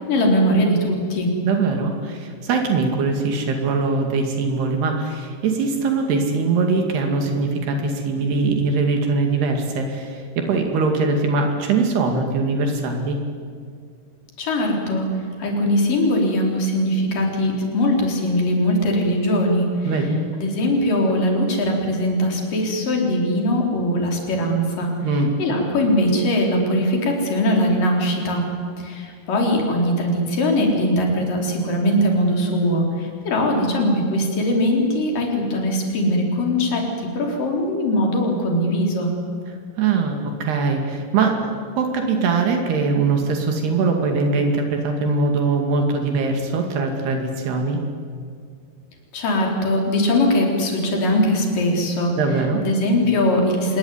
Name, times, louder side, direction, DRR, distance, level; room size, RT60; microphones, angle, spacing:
voice 1, 0.0-1.3 14.4-15.1 15.4-20.0 20.4-24.9 25.4-28.4 28.8-39.1 49.1-52.1 52.6-53.8, left 1 dB, 55° left, 0 dB, 5.8 m, -21 dB
voice 2, 1.4-13.2 19.9-20.3 25.0-25.3 39.8-47.8 52.2-52.6, right 4 dB, 75° right, 3 dB, 4.4 m, -22 dB
27.0 x 20.0 x 9.8 m, 2.2 s
omnidirectional pair, 4.7 m